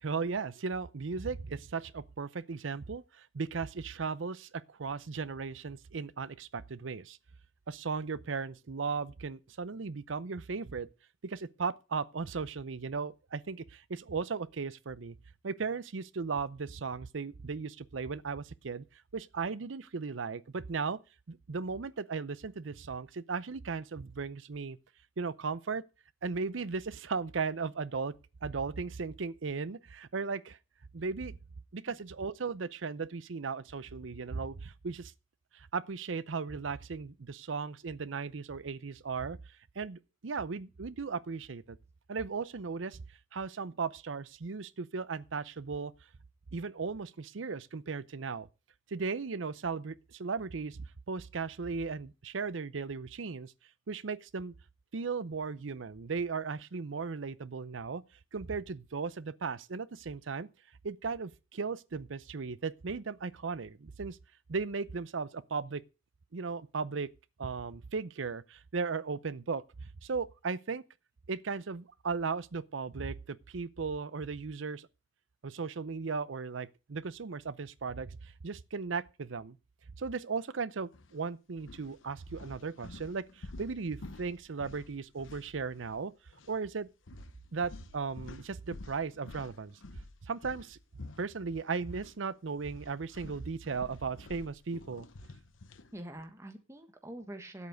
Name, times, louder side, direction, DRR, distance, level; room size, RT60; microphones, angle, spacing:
voice 1, 0.0-7.2 7.7-10.9 11.2-15.1 15.4-18.8 19.1-21.0 21.3-24.8 25.2-25.8 26.2-28.1 28.4-30.6 30.9-31.4 31.7-35.1 35.5-39.4 39.8-41.8 42.1-43.0 43.3-45.9 46.5-48.5 48.9-50.8 51.1-53.5 53.9-54.5 54.9-58.0 58.3-60.5 60.8-64.2 64.5-65.8 66.3-67.1 67.4-70.8 71.3-74.9 75.4-79.6 80.0-86.1 86.5-86.9 87.5-89.8 90.3-90.8 91.2-95.1, right 4 dB, 80° right, 0.6 m, -36 dB
voice 2, 31.8-32.2 95.9-97.7, right 1 dB, 15° right, 1.4 m, -45 dB
sound 1, 80.9-81.1 81.6-86.1 86.3-86.5 87.1-92.2 92.5-95.9, left 2 dB, 90° left, 0.9 m, -50 dB
9.3 x 8.3 x 6.4 m
head